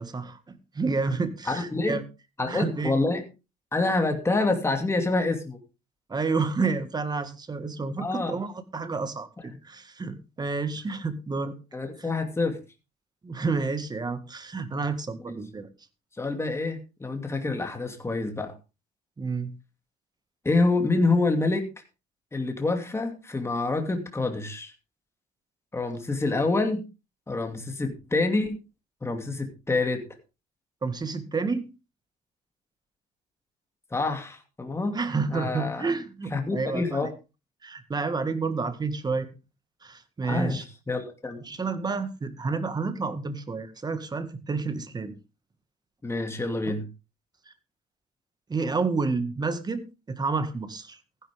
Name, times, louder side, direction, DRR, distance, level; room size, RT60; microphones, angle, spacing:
voice 1, 0.0-2.0 2.5-2.9 6.1-11.5 13.2-15.7 19.2-19.5 30.8-31.7 34.9-37.1 37.6-39.3 39.8-40.6 41.4-45.1 46.7-46.8 48.5-51.0, right 4 dB, 25° right, 11 dB, 1.9 m, -30 dB
voice 2, 1.5-2.0 2.4-3.2 3.7-5.6 8.0-8.4 11.7-12.6 15.3-15.4 16.2-18.5 20.4-21.7 22.3-24.7 25.7-26.8 27.3-28.6 29.0-30.0 33.9-35.0 35.3-35.9 36.3-37.1 40.2-41.4 46.0-46.9, left 3 dB, 15° left, 5 dB, 2.6 m, -27 dB
15.0 x 11.0 x 3.6 m, 0.29 s
cardioid pair, 110°, 17 cm